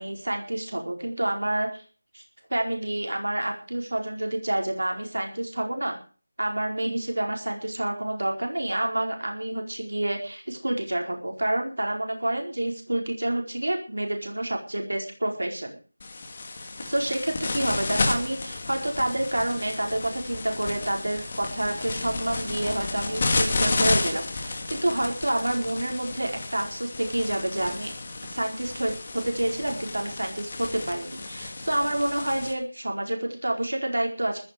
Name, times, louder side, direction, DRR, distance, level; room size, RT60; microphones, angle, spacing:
voice 1, 0.0-1.8 2.1-2.2 2.5-6.0 6.4-15.8 16.8-27.9 28.2-34.4, right 1 dB, 80° right, 2 dB, 4.6 m, -28 dB
sound 1, 16.0-32.5, left 3 dB, 25° left, 2.2 m, -32 dB
14.5 x 13.5 x 5.3 m, 0.39 s
figure-of-eight pair, 175°, 0 cm